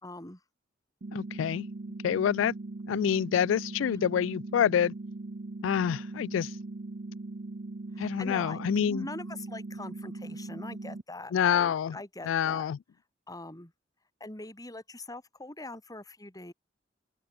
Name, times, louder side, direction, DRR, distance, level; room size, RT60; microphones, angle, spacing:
voice 1, 0.0-0.4 7.9-12.7 13.3-13.7 14.2-16.5, left 2 dB, 20° left, 3.3 m, -43 dB
sound 1, 1.0-11.0, right 2 dB, 45° right, 0.7 m, -40 dB
voice 2, 1.1-1.7 2.0-2.5 2.9-4.9 5.6-6.6 8.0-9.1 11.3-12.0 12.2-12.8, left 8 dB, 85° left, 0.3 m, -27 dB
open air
head